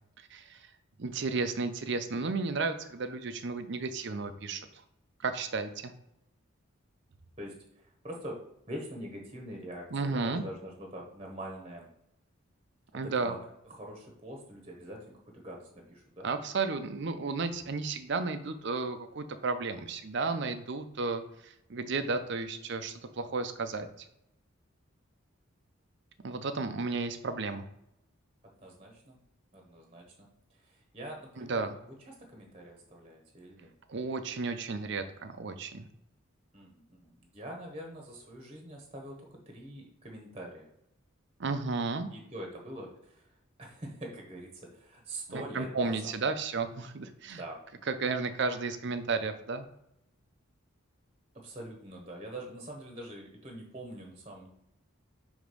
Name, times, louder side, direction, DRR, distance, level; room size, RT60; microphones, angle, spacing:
voice 1, 1.0-4.7 5.2-5.9 9.9-10.4 12.9-13.3 16.2-23.9 26.2-27.7 31.4-31.8 33.9-35.9 41.4-42.1 45.3-47.4 47.9-49.6, right 4 dB, 55° right, 9 dB, 0.6 m, -33 dB
voice 2, 7.4-8.4 8.7-9.9 10.1-11.9 12.9-13.4 13.7-15.0 15.3-16.3 28.6-29.2 29.5-30.3 30.7-31.9 32.3-33.7 36.5-40.7 42.1-43.3 43.6-46.1 47.3-47.6 51.3-54.5, right 1 dB, 25° right, 1 dB, 1.0 m, -44 dB
5.1 x 3.5 x 5.3 m, 0.79 s
head